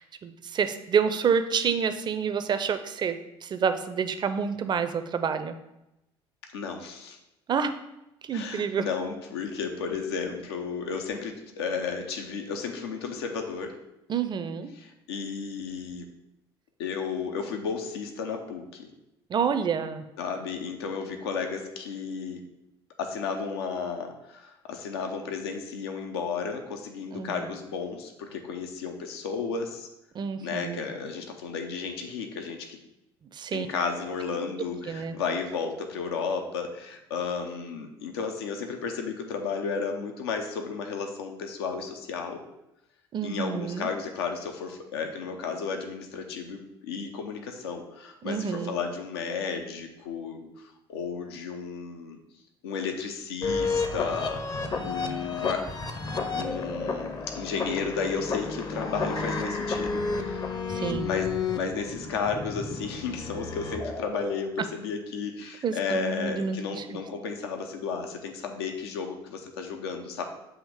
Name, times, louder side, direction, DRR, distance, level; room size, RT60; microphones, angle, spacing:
voice 1, 0.0-5.6 7.5-7.7 8.2-8.9 14.1-14.7 19.3-20.0 27.1-27.4 30.1-30.8 33.3-33.7 34.9-35.1 43.1-43.9 48.2-48.7 60.7-61.1 65.6-66.8, right 6 dB, 35° right, 9 dB, 0.5 m, -28 dB
voice 2, 6.5-7.2 8.3-13.8 14.8-16.1 16.8-18.9 20.2-22.4 23.0-29.9 30.4-32.8 33.5-42.4 43.2-52.2 52.6-55.7 56.3-60.5 61.0-70.2, left 5 dB, 75° left, 4 dB, 0.7 m, -33 dB
sound 1, 53.4-64.4, left 4 dB, 30° left, 0.7 m, -31 dB
7.1 x 3.0 x 4.8 m, 0.90 s
figure-of-eight pair, 60°, 13 cm